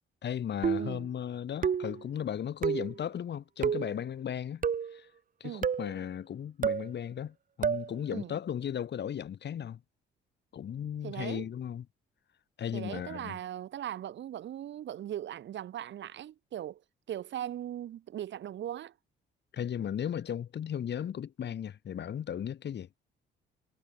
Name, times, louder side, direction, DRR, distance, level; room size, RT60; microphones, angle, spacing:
voice 1, 0.2-4.7 4.9-5.1 5.4-9.8 10.5-11.9 12.6-13.4 19.5-22.9, left 9 dB, 60° left, 5.1 m, -36 dB
sound 1, 0.6-1.0 1.6-2.0 2.6-2.9 3.6-3.9 4.6-5.0 5.6-5.9 6.6-6.9 7.6-7.9, right 7 dB, 45° right, 1.7 m, -29 dB
voice 2, 11.0-11.5 12.7-16.8 17.1-18.9, right 11 dB, 65° right, 1.4 m, -39 dB
cardioid pair, 90°, 20 cm